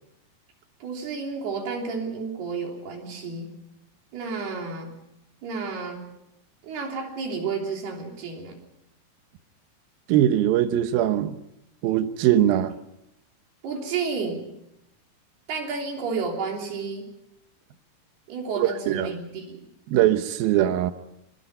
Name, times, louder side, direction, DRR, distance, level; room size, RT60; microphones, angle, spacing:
voice 1, 0.8-3.5 4.1-4.9 5.4-6.1 6.6-8.6 13.6-14.5 15.5-17.1 18.3-19.6, right 4 dB, 60° right, 1 dB, 5.1 m, -31 dB
voice 2, 10.1-11.4 11.8-12.7 18.6-19.1 19.9-20.9, right 12 dB, 75° right, 10 dB, 2.2 m, -21 dB
26.5 x 22.0 x 5.5 m, 0.84 s
omnidirectional pair, 5.4 m